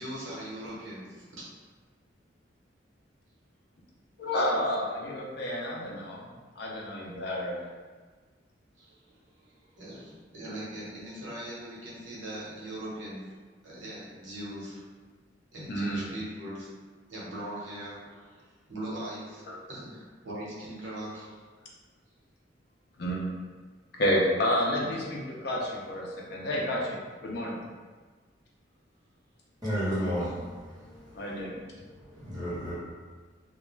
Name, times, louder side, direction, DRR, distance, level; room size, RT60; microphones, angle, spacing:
voice 1, 0.0-1.5 8.8-13.3 13.6-14.8 15.5-16.7 17.1-21.7 24.8-25.0, right 1 dB, 85° right, -6 dB, 0.8 m, -41 dB
voice 2, 4.2-6.3 6.6-7.6 15.7-16.1 19.5-19.6 23.0-23.2 23.9-27.6 31.1-31.5, left 1 dB, 60° left, -3 dB, 0.5 m, -30 dB
voice 3, 29.6-31.6 31.9-32.7, equal, 20° right, -10 dB, 0.9 m, -33 dB
2.3 x 2.2 x 3.1 m, 1.4 s
head